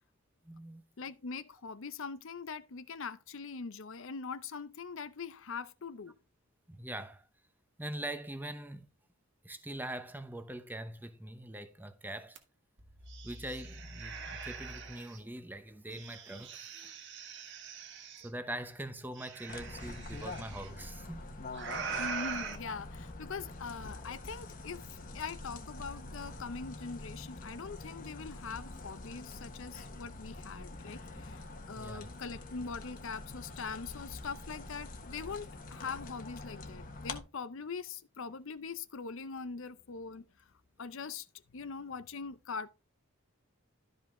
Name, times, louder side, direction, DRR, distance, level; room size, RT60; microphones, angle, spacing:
voice 1, 0.4-0.8 6.7-7.3 7.8-8.9 9.4-12.4 13.2-16.9 18.2-21.4 31.7-32.1, right 1 dB, 10° right, 0.8 m, -43 dB
voice 2, 1.0-6.2 22.0-40.5 40.8-41.3 41.5-42.7, left 5 dB, 60° left, 0.6 m, -42 dB
sound 1, 12.3-12.4 12.8-15.2 15.9-18.3 19.1-20.7 21.5-22.6, right 5 dB, 55° right, 1.5 m, -42 dB
sound 2, 19.5-37.2, left 2 dB, 40° left, 1.3 m, -45 dB
12.5 x 5.3 x 3.7 m
head